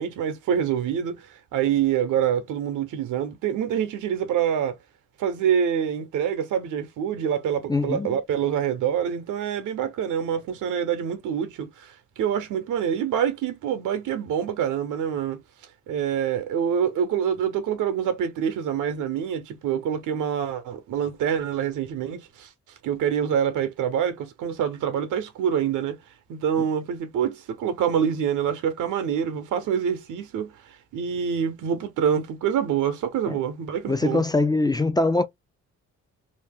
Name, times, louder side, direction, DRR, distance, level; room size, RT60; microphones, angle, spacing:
voice 1, 0.0-4.8 5.2-15.4 15.9-22.5 22.8-26.0 26.3-30.5 30.9-34.2, right 8 dB, 80° right, 0.9 m, -26 dB
voice 2, 7.7-8.1 33.3-33.4 33.9-35.3, left 2 dB, 15° left, 0.4 m, -22 dB
2.8 x 2.1 x 3.5 m
cardioid pair, 90°, 30 cm